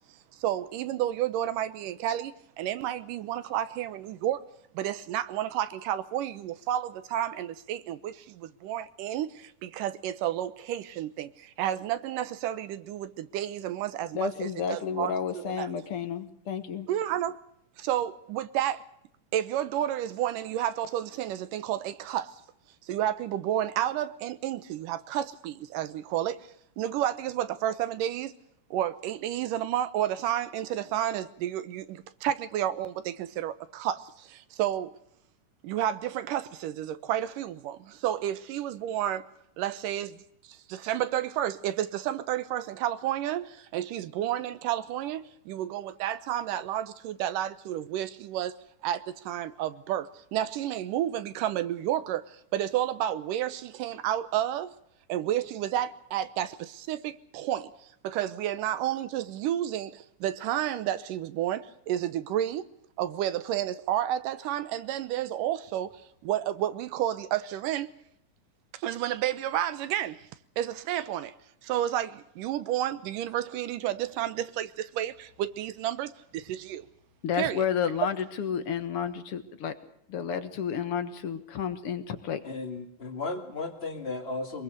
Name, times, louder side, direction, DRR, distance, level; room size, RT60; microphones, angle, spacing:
voice 1, 0.4-4.4 4.7-15.1 15.5-15.7 16.9-17.4 17.8-18.8 19.3-22.4 22.9-26.4 26.8-28.3 28.7-34.9 35.6-39.2 39.6-40.2 40.5-48.5 48.8-54.7 55.1-57.7 58.0-62.7 63.0-65.9 66.2-67.9 68.7-70.3 70.6-71.3 71.6-76.9 77.4-77.6, right 12 dB, 90° right, 2.6 m, -31 dB
voice 2, 14.1-16.9 77.2-79.7 80.1-82.4, left 7 dB, 55° left, 1.9 m, -31 dB
voice 3, 82.4-84.6, left 3 dB, 20° left, 2.0 m, -35 dB
23.5 x 21.5 x 6.6 m
omnidirectional pair, 3.7 m